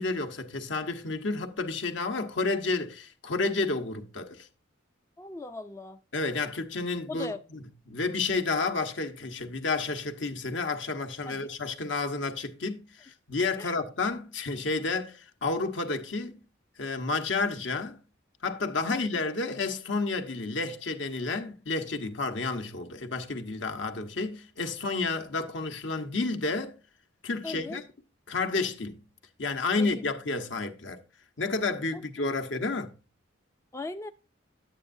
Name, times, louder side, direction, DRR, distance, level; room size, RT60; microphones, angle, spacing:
voice 1, 0.0-4.5 6.1-7.6 7.9-16.4 16.8-18.0 18.4-26.8 27.2-27.8 28.3-29.0 29.4-31.0 31.4-32.9, left 3 dB, 70° left, 1.1 m, -31 dB
voice 2, 5.2-6.0 7.1-7.4 11.3-11.5 13.6-13.7 18.9-19.2 27.4-27.8 29.8-29.9 31.9-32.0 33.7-34.1, left 2 dB, 15° left, 0.3 m, -38 dB
10.5 x 8.5 x 2.6 m
head